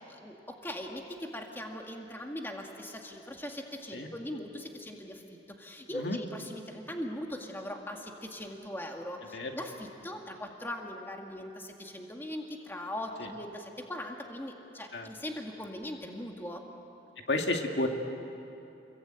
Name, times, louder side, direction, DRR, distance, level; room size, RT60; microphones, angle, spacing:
voice 1, 0.1-16.6, left 1 dB, 10° left, 2 dB, 2.0 m, -40 dB
voice 2, 17.3-17.9, left 2 dB, 65° left, 3 dB, 2.2 m, -31 dB
30.0 x 22.0 x 8.9 m, 2.9 s
head